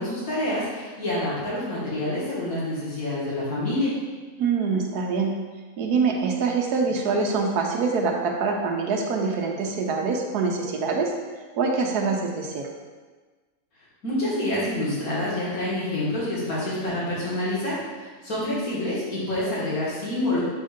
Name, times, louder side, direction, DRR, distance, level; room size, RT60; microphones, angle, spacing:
voice 1, 0.0-3.9 14.0-20.4, left 1 dB, 70° left, -9 dB, 2.3 m, -27 dB
voice 2, 4.4-5.3 5.8-11.1 11.6-12.7, right 4 dB, 85° right, 1 dB, 1.3 m, -24 dB
7.3 x 2.7 x 5.0 m, 1.4 s
omnidirectional pair, 1.6 m